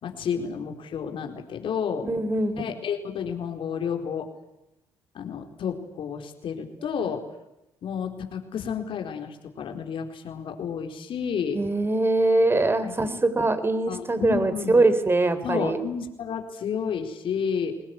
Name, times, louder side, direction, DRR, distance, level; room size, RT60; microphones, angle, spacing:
voice 1, 0.0-2.1 2.5-4.3 5.1-7.2 7.8-11.6 12.8-13.0 13.9-14.8 15.4-17.8, left 7 dB, 60° left, 4 dB, 4.4 m, -31 dB
voice 2, 2.1-2.6 7.0-7.1 11.5-15.8, right 2 dB, 25° right, 12 dB, 4.1 m, -22 dB
24.0 x 19.5 x 9.7 m, 0.88 s
supercardioid pair, 65°, 10 cm